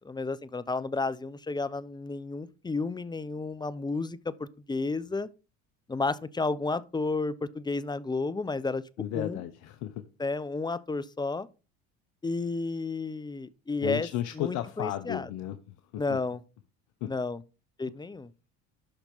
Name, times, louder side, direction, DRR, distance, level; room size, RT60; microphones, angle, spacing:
voice 1, 0.0-5.3 5.9-8.8 9.1-9.4 10.2-11.5 12.2-14.1 14.3-15.3 16.0-16.4 17.1-17.4 17.8-18.3, left 3 dB, 15° left, 0.7 m, -32 dB
voice 2, 9.0-10.0 13.8-16.2 17.0-17.1, left 12 dB, 65° left, 1.1 m, -34 dB
12.0 x 4.4 x 5.5 m
supercardioid pair, 85°, 31 cm